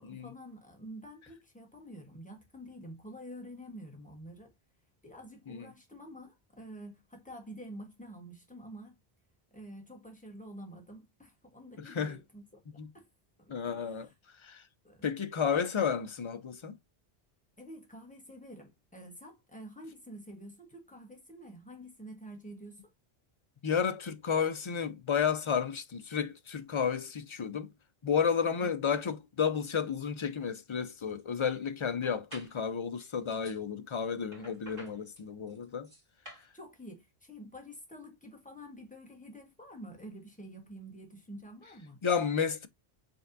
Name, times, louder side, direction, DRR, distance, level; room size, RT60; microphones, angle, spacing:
voice 1, 0.0-4.5 5.0-9.0 9.5-13.1 13.4-14.1 14.8-15.1 17.6-22.9 28.4-28.7 36.5-42.0, equal, 10° left, 1.3 m, -48 dB
voice 2, 11.8-12.2 12.8-12.9 13.5-14.1 14.4-14.6 15.0-16.8 23.6-27.7 28.0-35.9 42.0-42.7, left 7 dB, 45° left, 0.4 m, -32 dB
sound 1, 30.4-30.5 30.9-31.4 32.0-32.6 33.0-33.6 34.3-36.5, equal, 55° right, 2.4 m, -52 dB
5.2 x 3.4 x 2.6 m
omnidirectional pair, 1.1 m